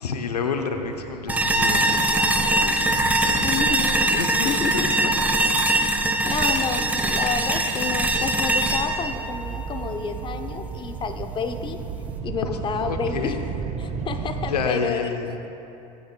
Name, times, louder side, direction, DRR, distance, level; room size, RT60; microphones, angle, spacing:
voice 1, 0.0-3.5 4.1-5.1 12.4-12.5 12.8-13.4 14.5-15.4, left 5 dB, 80° left, 5 dB, 0.8 m, -30 dB
sound 1, 0.7-14.7, right 6 dB, 35° right, 0.8 m, -35 dB
sound 2, 1.3-10.3, right 1 dB, 5° right, 1.0 m, -22 dB
voice 2, 3.4-4.9 6.2-11.8 12.2-13.5 13.8-15.1, left 6 dB, 25° left, 8 dB, 0.7 m, -30 dB
18.0 x 9.5 x 2.3 m, 2.9 s
hypercardioid pair, 80°, 20 cm